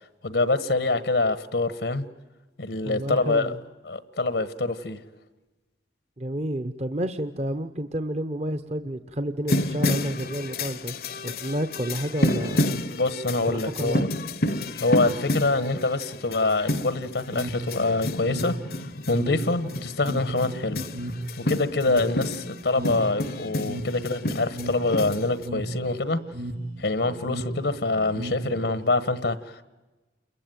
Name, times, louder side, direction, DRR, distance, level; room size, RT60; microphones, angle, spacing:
voice 1, 0.2-2.0 2.6-3.5 3.8-5.0 12.9-14.1 14.8-18.5 19.1-20.8 21.4-26.2 26.8-29.6, left 3 dB, 80° left, 14 dB, 1.3 m, -25 dB
voice 2, 2.8-3.6 6.2-10.9 11.2-12.8 13.5-14.0, right 1 dB, 35° right, 10 dB, 0.9 m, -30 dB
sound 1, 9.5-25.5, left 1 dB, 55° left, 0.9 m, -30 dB
sound 2, 17.3-28.9, right 1 dB, 60° right, 2.6 m, -35 dB
29.0 x 22.0 x 9.2 m, 1.1 s
head